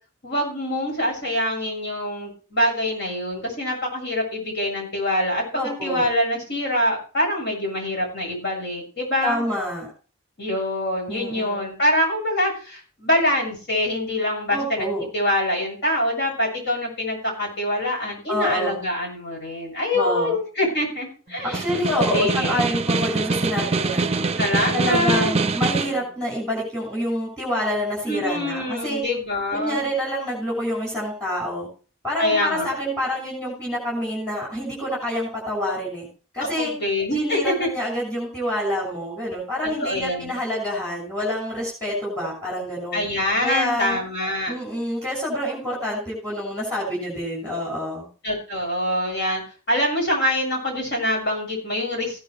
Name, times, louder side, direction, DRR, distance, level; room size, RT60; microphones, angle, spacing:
voice 1, 0.2-9.5 10.4-21.6 22.0-22.7 24.4-25.3 28.1-29.9 32.2-32.7 36.6-37.7 39.6-40.3 42.9-44.5 48.2-49.4 49.7-52.2, left 1 dB, 55° left, -1 dB, 7.3 m, -25 dB
voice 2, 5.5-6.1 9.2-9.9 11.1-11.8 14.5-15.0 18.3-18.8 19.9-20.4 21.4-24.3 24.7-29.0 29.5-31.7 32.0-36.1 36.3-36.7 37.1-43.0 43.4-44.0 44.5-48.1, equal, 5° left, -4 dB, 6.7 m, -27 dB
Snare drum, 21.4-26.0, right 4 dB, 30° right, 0.6 m, -24 dB
16.5 x 10.5 x 3.3 m, 0.37 s
head